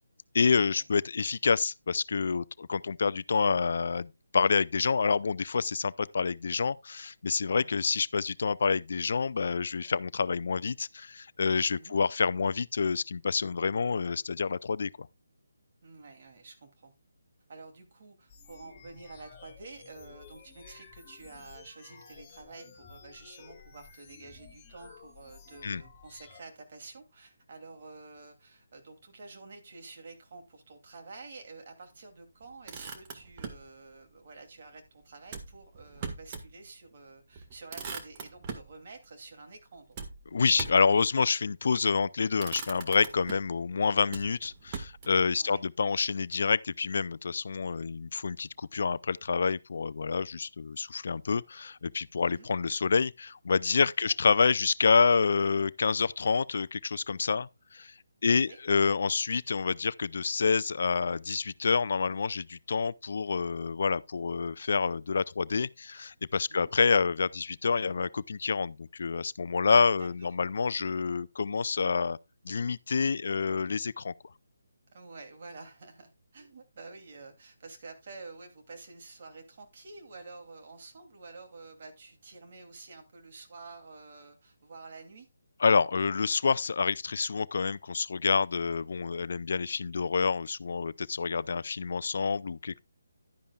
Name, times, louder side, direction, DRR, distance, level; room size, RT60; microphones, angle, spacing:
voice 1, 0.3-15.1 25.6-25.8 40.3-57.9 58.2-72.2 72.4-74.1 85.6-92.8, left 5 dB, 60° left, 0.4 m, -28 dB
voice 2, 15.8-16.9 17.5-40.0 45.4-45.6 52.2-52.5 54.0-54.1 58.2-58.6 66.5-66.7 70.0-70.3 74.9-85.3, right 3 dB, 50° right, 2.8 m, -49 dB
sound 1, 18.3-26.4, left 5 dB, 15° left, 4.4 m, -53 dB
Motor vehicle (road), 32.4-33.7 35.3-36.5 36.9-37.0 37.3-38.7 39.9-40.9 41.8-42.0 42.4-43.6 44.1-45.3, right 5 dB, 30° right, 1.6 m, -41 dB
11.5 x 10.5 x 2.4 m
figure-of-eight pair, 155°, 0 cm